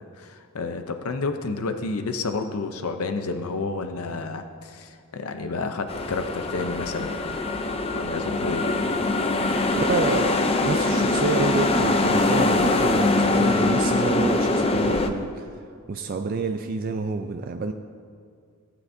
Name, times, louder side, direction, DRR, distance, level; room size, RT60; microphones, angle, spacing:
voice 1, 0.0-7.5 7.9-8.7, left 3 dB, 80° left, 7 dB, 0.6 m, -30 dB
sound 1, 5.9-15.1, left 2 dB, 25° left, 0.5 m, -23 dB
voice 2, 9.7-10.4 10.6-15.4 15.9-17.7, right 4 dB, 40° right, 5 dB, 0.4 m, -28 dB
18.0 x 9.5 x 2.7 m, 2.2 s
head